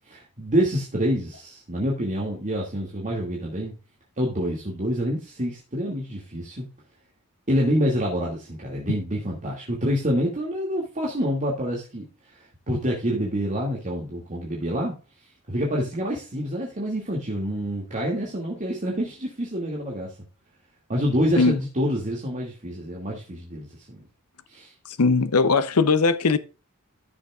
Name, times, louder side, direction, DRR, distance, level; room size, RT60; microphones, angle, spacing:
voice 1, 0.0-3.7 4.2-6.7 7.5-12.0 12.4-14.9 15.5-20.1 20.9-24.0 24.5-24.7, equal, 35° right, 2.4 m, -27 dB
voice 2, 25.0-26.4, left 4 dB, 85° left, 0.8 m, -19 dB
14.5 x 6.8 x 2.5 m
head